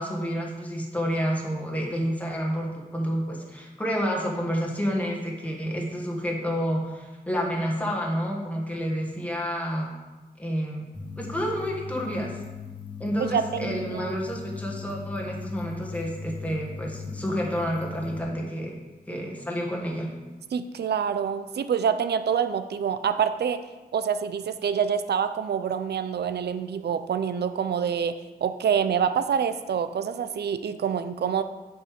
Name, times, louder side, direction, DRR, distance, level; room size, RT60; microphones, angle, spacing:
voice 1, 0.0-9.9 10.4-10.9 11.2-12.4 13.0-18.7 19.1-20.1, equal, 10° left, -2 dB, 1.6 m, -29 dB
sound 1, 10.9-18.2, left 4 dB, 30° left, 1.3 m, -39 dB
voice 2, 13.2-14.2 20.5-23.6 23.9-28.2 28.4-31.4, right 7 dB, 85° right, 11 dB, 0.5 m, -26 dB
11.0 x 5.4 x 5.2 m, 1.2 s
wide cardioid pair, 165°, 17 cm